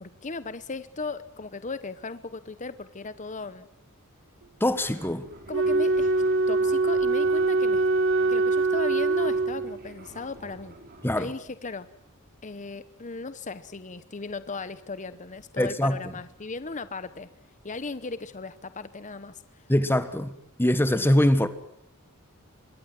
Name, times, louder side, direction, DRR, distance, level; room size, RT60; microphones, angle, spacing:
voice 1, 0.0-3.7 5.5-6.1 6.5-7.9 8.3-10.8 11.2-11.9 12.4-17.3 17.6-19.4, left 3 dB, 35° left, 0.9 m, -37 dB
voice 2, 4.6-5.3 11.0-11.3 15.6-16.0 19.7-20.3 20.6-21.5, left 1 dB, 10° left, 1.4 m, -23 dB
Fixed-wing aircraft airplane, 4.6-11.2, right 1 dB, 45° right, 5.2 m, -48 dB
Wind instrument woodwind instrument, 5.5-9.9, right 3 dB, 60° right, 1.8 m, -23 dB
25.5 x 22.5 x 7.7 m
head